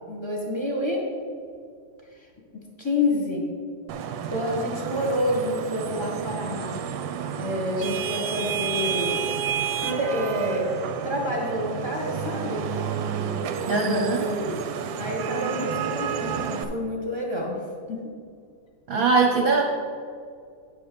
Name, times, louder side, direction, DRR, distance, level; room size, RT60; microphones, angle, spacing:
voice 1, 0.1-1.0 2.1-2.3 2.5-3.5 4.3-6.8 7.4-9.3 9.8-10.7 11.0-12.6 13.8-14.6 15.0-17.6 17.9-18.0, left 1 dB, 20° left, -1 dB, 0.9 m, -28 dB
Vehicle horn car horn honking / Traffic noise roadway noise, 3.9-16.6, right 7 dB, 75° right, 1.2 m, -30 dB
voice 2, 13.7-14.3 18.9-19.6, right 4 dB, 55° right, -1 dB, 1.1 m, -21 dB
9.8 x 3.5 x 6.7 m, 2.2 s
omnidirectional pair, 2.2 m